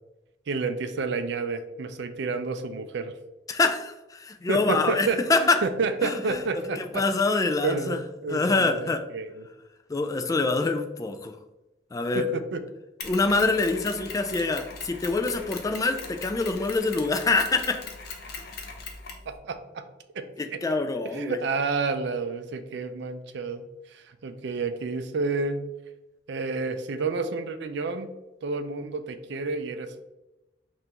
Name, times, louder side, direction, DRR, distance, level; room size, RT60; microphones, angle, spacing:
voice 1, 0.5-3.1 4.5-7.0 7.3-9.5 12.1-12.6 19.3-19.9 20.1-20.6 21.0-25.7 26.3-28.1 28.4-30.0, right 4 dB, 65° right, 9 dB, 0.4 m, -30 dB
voice 2, 3.5-5.6 6.0-6.4 6.8-8.0 8.3-9.0 9.9-11.3 11.9-12.3 13.0-17.8 20.4-21.4, left 3 dB, 20° left, 5 dB, 0.3 m, -25 dB
Mechanisms, 13.0-19.3, left 4 dB, 55° left, 0.7 m, -40 dB
5.4 x 2.5 x 2.9 m, 1.0 s
head